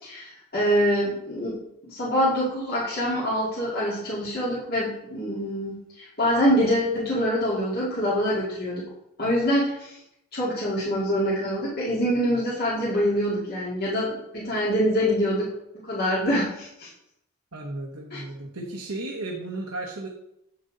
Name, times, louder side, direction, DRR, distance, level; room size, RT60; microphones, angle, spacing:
voice 1, 0.0-1.6 1.8-8.9 9.2-10.0 10.3-15.5 15.8-16.9 18.1-18.2, equal, 45° left, -9 dB, 2.3 m, -25 dB
voice 2, 17.5-20.1, right 2 dB, 85° right, -2 dB, 1.2 m, -34 dB
8.1 x 7.8 x 4.0 m, 0.80 s
head